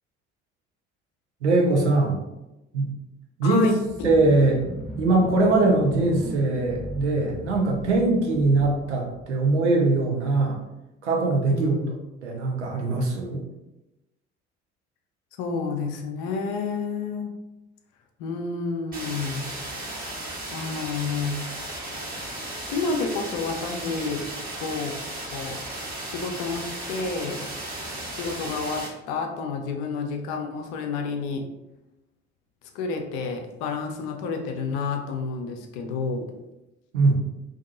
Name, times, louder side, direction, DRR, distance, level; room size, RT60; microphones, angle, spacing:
voice 1, 1.4-2.2 2.7-2.9 3.4-4.6 5.0-10.6 11.0-11.8 12.2-13.4 36.9-37.1, right 2 dB, 85° right, 0 dB, 0.5 m, -21 dB
voice 2, 3.4-3.7 11.5-12.0 15.4-17.3 18.2-19.5 20.5-21.5 22.7-24.3 24.6-24.9 25.3-25.7 26.1-27.5 28.1-31.5 32.7-36.3, left 4 dB, 65° left, 4 dB, 0.5 m, -30 dB
sound 1, 3.8-9.8, equal, ahead, 0.6 m, -37 dB
sound 2, 18.9-28.9, right 1 dB, 25° right, 1.1 m, -35 dB
2.6 x 2.3 x 2.5 m, 0.96 s
figure-of-eight pair, 50°, 34 cm